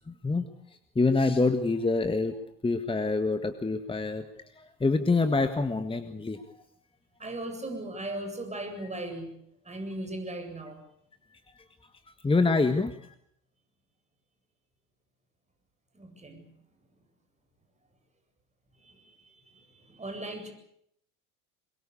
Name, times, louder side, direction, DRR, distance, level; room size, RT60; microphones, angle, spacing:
voice 1, 0.1-0.5 0.9-2.3 2.6-4.2 4.6-6.4 12.2-13.0, left 3 dB, 10° left, 9 dB, 1.6 m, -26 dB
voice 2, 7.2-9.3 9.6-10.8 15.9-16.5 18.8-20.5, right 1 dB, 15° right, 5 dB, 7.8 m, -38 dB
23.5 x 22.0 x 8.4 m, 0.69 s
hypercardioid pair, 75°, 46 cm